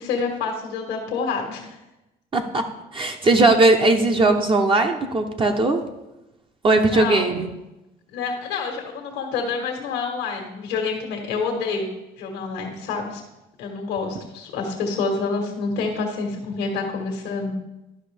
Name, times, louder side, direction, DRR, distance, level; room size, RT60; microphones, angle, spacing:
voice 1, 0.0-1.8 6.9-7.3 8.1-11.9 12.2-13.2 13.6-17.5, left 4 dB, 90° left, 1 dB, 1.4 m, -27 dB
voice 2, 2.3-2.6 2.9-5.8 6.6-7.5, right 2 dB, 30° right, 4 dB, 0.7 m, -18 dB
12.0 x 5.3 x 3.4 m, 0.96 s
cardioid pair, 110°, 17 cm